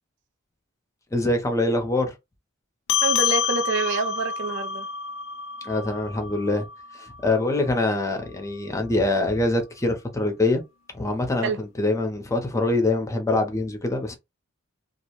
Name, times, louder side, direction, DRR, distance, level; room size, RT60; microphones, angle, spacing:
voice 1, 1.1-2.1 5.6-6.7 7.2-10.6 10.9-14.2, left 2 dB, 15° left, 0.5 m, -24 dB
sound 1, 2.9-7.7, left 7 dB, 65° left, 0.3 m, -28 dB
voice 2, 3.0-4.9 11.4-11.6, right 5 dB, 60° right, 0.4 m, -27 dB
2.4 x 2.1 x 2.9 m
head